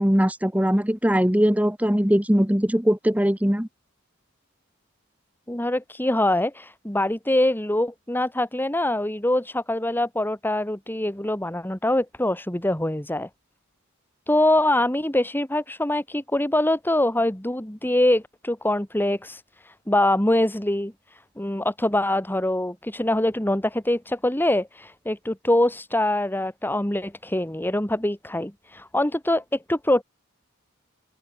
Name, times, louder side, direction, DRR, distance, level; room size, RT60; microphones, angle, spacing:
voice 1, 0.0-3.7, equal, 5° right, 1.6 m, -21 dB
voice 2, 5.5-13.3 14.3-20.9 21.4-30.0, left 1 dB, 10° left, 2.1 m, -24 dB
open air
head